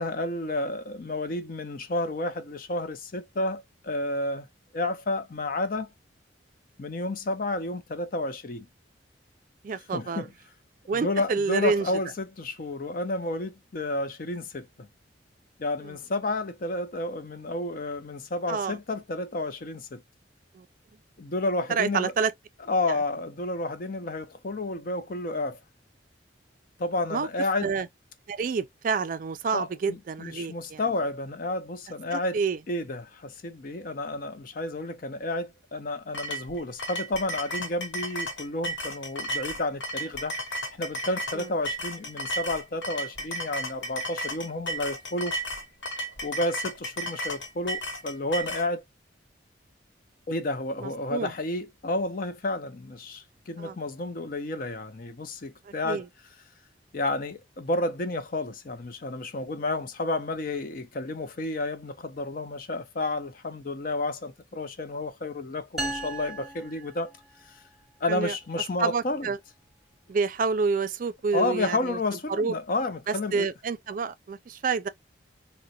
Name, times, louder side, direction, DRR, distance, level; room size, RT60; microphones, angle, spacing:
voice 1, 0.0-4.5 4.7-5.9 6.8-8.7 9.9-10.3 11.0-14.9 15.6-20.0 21.2-22.1 22.7-25.6 26.8-27.7 29.5-32.4 32.7-40.4 40.8-45.3 46.2-48.8 50.3-56.0 56.9-67.1 67.4-67.6 68.0-69.3 71.3-73.5, left 2 dB, 45° left, 0.5 m, -31 dB
voice 2, 9.6-10.3 10.9-11.9 15.8-15.9 18.5-18.8 20.5-20.7 21.7-22.3 27.1-27.3 27.6-27.9 28.3-30.8 32.1-32.6 41.3-41.5 50.8-51.3 53.6-53.8 55.8-56.0 68.1-68.3 68.8-69.4 70.1-72.0 72.3-72.5 73.1-74.9, right 5 dB, 45° right, 0.3 m, -28 dB
sound 1, 36.1-48.7, equal, 80° left, 1.1 m, -34 dB
sound 2, 65.8-67.5, right 2 dB, ahead, 0.7 m, -36 dB
3.7 x 2.1 x 2.6 m
head